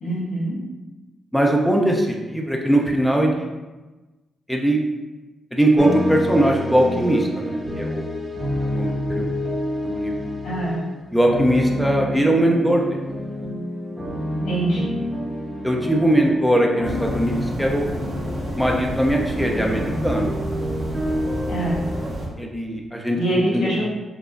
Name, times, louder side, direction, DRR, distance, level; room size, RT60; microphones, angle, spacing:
voice 1, 0.0-0.6 10.4-10.8 14.4-14.9 21.5-21.8 23.1-23.8, right 1 dB, 85° left, -6 dB, 1.5 m, -24 dB
voice 2, 1.3-3.5 4.5-4.8 5.5-8.0 8.6-9.3 9.8-10.1 11.1-13.0 14.8-14.9 15.6-17.9 18.6-20.3 22.4-23.2 23.5-23.7, right 1 dB, ahead, 0 dB, 0.5 m, -20 dB
sound 1, 5.8-22.1, left 1 dB, 20° right, 1.0 m, -28 dB
sound 2, 16.8-22.3, right 1 dB, 70° right, 1.4 m, -31 dB
4.7 x 2.4 x 2.5 m, 1.2 s
cardioid pair, 70°, 0 cm